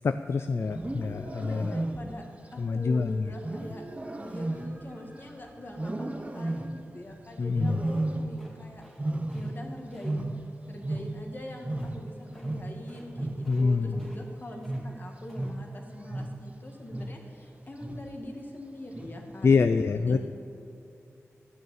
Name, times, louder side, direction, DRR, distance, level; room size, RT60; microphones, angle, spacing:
voice 1, 0.0-1.8 2.6-3.3 7.4-7.8 13.5-14.0 19.4-20.2, left 4 dB, 55° left, 10 dB, 0.4 m, -26 dB
Wild animals, 0.6-2.3 3.4-5.3 5.7-6.9 7.5-8.6 8.9-11.4 11.6-16.5 16.9-17.4 17.8-18.2 18.9-19.4, right 2 dB, 25° right, 0.8 m, -34 dB
voice 2, 1.4-2.3 2.5-3.8 4.2-8.8 9.3-10.3 10.7-20.2, left 1 dB, 40° left, 2 dB, 1.7 m, -43 dB
sound 1, 7.8-9.0 9.3-9.5 9.9-10.1 11.7-12.0 12.3-12.5 12.8-13.1 13.4-13.7 13.9-14.8 15.1-15.5, equal, 5° left, 2.2 m, -55 dB
12.5 x 6.3 x 8.8 m, 2.6 s
wide cardioid pair, 85°, 5 cm